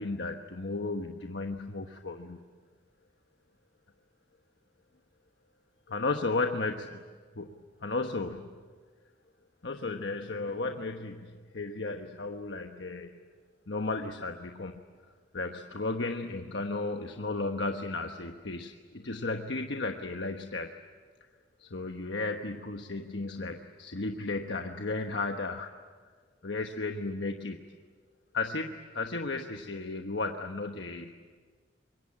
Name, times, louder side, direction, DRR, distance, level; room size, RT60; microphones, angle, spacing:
voice 1, 0.0-2.4 5.9-7.0 7.3-7.5 7.8-8.5 9.6-13.1 13.7-14.8 15.3-20.7 21.6-25.7 26.4-27.8 28.3-31.4, left 3 dB, 70° left, 4 dB, 1.2 m, -34 dB
25.5 x 23.0 x 8.7 m, 1.6 s
head